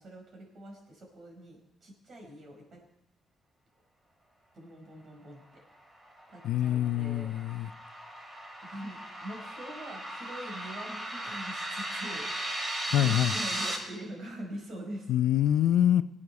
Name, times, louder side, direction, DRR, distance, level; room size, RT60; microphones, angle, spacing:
voice 1, 0.0-2.8 4.5-5.4 6.3-7.3 8.6-15.1, right 1 dB, 55° right, 1 dB, 4.8 m, -44 dB
sound 1, 6.0-13.8, right 1 dB, 25° right, 3.3 m, -37 dB
voice 2, 6.4-7.7 12.9-13.3 15.1-16.0, left 11 dB, 80° left, 12 dB, 0.4 m, -25 dB
16.5 x 8.5 x 6.6 m, 0.90 s
cardioid pair, 90°, 0 cm